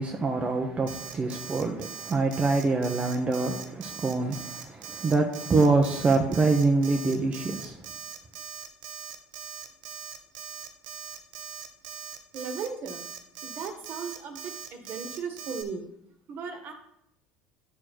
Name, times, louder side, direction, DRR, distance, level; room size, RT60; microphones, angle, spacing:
voice 1, 0.0-7.8, right 3 dB, 30° right, 3 dB, 1.1 m, -25 dB
Alarm, 0.9-15.6, right 7 dB, 80° right, 0.9 m, -41 dB
voice 2, 12.3-13.0 13.4-15.8 16.3-16.7, right 5 dB, 50° right, 6 dB, 1.6 m, -36 dB
11.0 x 4.4 x 4.4 m, 0.77 s
hypercardioid pair, 80°, 4 cm